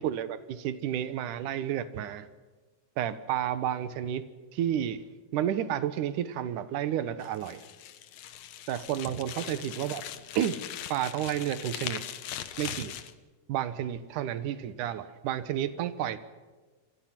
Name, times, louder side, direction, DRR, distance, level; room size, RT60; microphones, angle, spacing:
voice 1, 0.0-2.3 3.0-4.2 4.5-5.0 5.3-7.6 8.7-10.0 10.4-10.6 10.9-12.0 12.6-12.9 13.5-16.2, right 10 dB, 70° right, 12 dB, 2.0 m, -31 dB
sound 1, 7.2-13.1, left 11 dB, 85° left, 1.6 m, -40 dB
27.5 x 24.5 x 6.0 m, 1.3 s
omnidirectional pair, 5.0 m